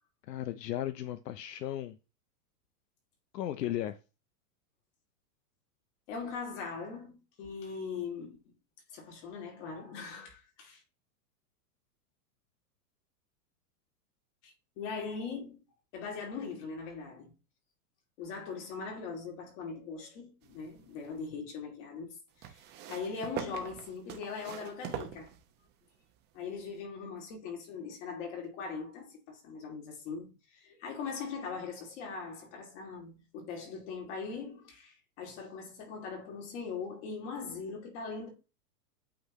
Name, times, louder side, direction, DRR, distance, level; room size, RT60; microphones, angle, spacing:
voice 1, 0.3-2.0 3.3-4.0, left 12 dB, 90° left, 0.7 m, -35 dB
voice 2, 6.1-8.5 8.9-10.8 14.4-15.6 15.9-17.3 18.2-22.6 22.9-25.3 26.3-38.3, left 5 dB, 45° left, 2.7 m, -41 dB
sound 1, 20.4-21.3 22.4-25.8 26.8-26.9, right 10 dB, 20° right, 0.7 m, -43 dB
8.5 x 4.0 x 3.0 m
supercardioid pair, 150°, 47 cm